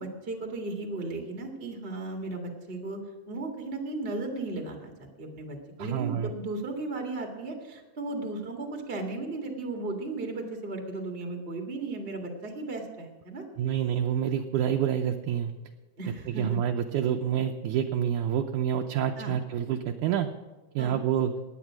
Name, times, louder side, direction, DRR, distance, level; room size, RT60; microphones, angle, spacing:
voice 1, 0.0-3.0 3.3-13.4 16.0-16.6 19.2-19.4 20.8-21.0, right 2 dB, 30° right, 3 dB, 1.1 m, -35 dB
voice 2, 5.8-6.3 13.6-15.5 16.3-20.3 20.8-21.3, right 9 dB, 75° right, 4 dB, 1.9 m, -27 dB
17.0 x 10.0 x 6.1 m, 1.3 s
omnidirectional pair, 4.0 m